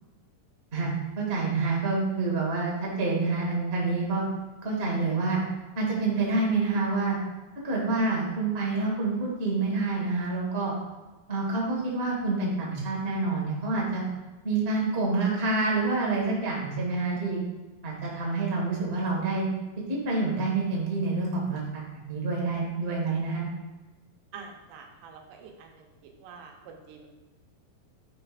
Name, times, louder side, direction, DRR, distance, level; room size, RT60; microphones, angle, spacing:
voice 1, 0.7-4.2 4.6-5.4 5.7-7.2 7.6-10.7 11.3-14.0 14.4-17.4 17.8-19.5 19.9-23.5, right 3 dB, 55° right, -3 dB, 0.6 m, -27 dB
voice 2, 24.3-27.1, right 5 dB, 80° right, 2 dB, 2.4 m, -47 dB
9.8 x 5.2 x 2.5 m, 1.2 s
omnidirectional pair, 4.0 m